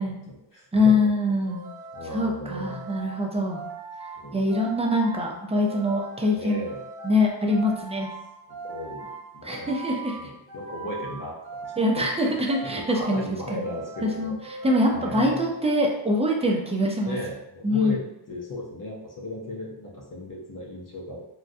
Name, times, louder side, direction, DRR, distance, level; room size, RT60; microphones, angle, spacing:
voice 1, 0.0-0.9 1.9-2.9 4.2-4.5 6.3-6.8 8.5-11.4 11.6-14.4 14.9-15.4 17.0-18.0 18.3-21.2, left 1 dB, 45° left, -3 dB, 0.7 m, -36 dB
voice 2, 0.7-1.6 2.1-3.6 4.3-6.6 7.0-8.1 9.4-10.2 11.8-13.2 13.5-13.7 14.0-14.3 14.6-17.2 17.6-18.0, left 1 dB, 15° right, 0 dB, 0.4 m, -24 dB
sound 1, 1.5-16.0, right 3 dB, 60° right, 0.9 m, -40 dB
3.6 x 2.2 x 2.6 m, 0.85 s
wide cardioid pair, 105°, 46 cm